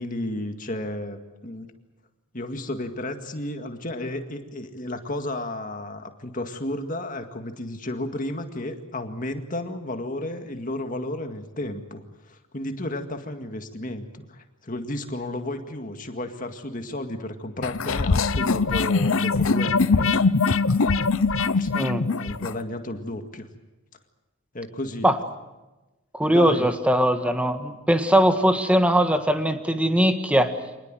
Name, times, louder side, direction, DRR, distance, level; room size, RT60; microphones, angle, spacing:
voice 1, 0.0-1.7 2.3-20.2 21.5-21.7 22.2-23.5 24.5-25.1 26.3-26.7, left 1 dB, 35° left, 6 dB, 2.0 m, -33 dB
sound 1, 17.6-22.6, left 4 dB, 65° left, 0.7 m, -22 dB
voice 2, 21.7-22.0 25.0-25.2 26.1-30.5, equal, 5° right, 7 dB, 1.5 m, -20 dB
26.0 x 20.0 x 7.8 m, 1.1 s
head